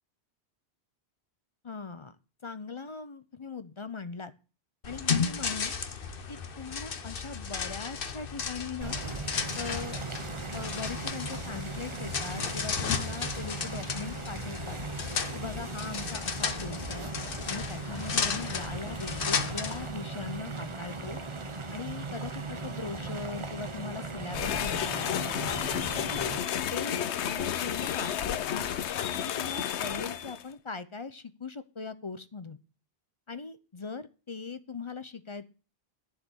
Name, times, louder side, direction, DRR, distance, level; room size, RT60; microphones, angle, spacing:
voice 1, 1.6-2.2 2.4-4.3 4.8-5.7 6.3-9.0 9.5-10.0 10.5-14.8 15.3-17.1 17.5-21.2 21.7-25.2 26.0-26.4 26.7-28.7 29.2-32.6 33.3-35.5, left 4 dB, 35° left, 13 dB, 0.5 m, -40 dB
sound 1, 4.8-19.9, left 5 dB, 55° left, 1.1 m, -34 dB
sound 2, 8.8-26.4, right 3 dB, 30° right, 1.0 m, -38 dB
sound 3, 24.3-30.4, left 9 dB, 85° left, 1.0 m, -31 dB
11.0 x 4.8 x 7.9 m, 0.35 s
omnidirectional pair, 1.1 m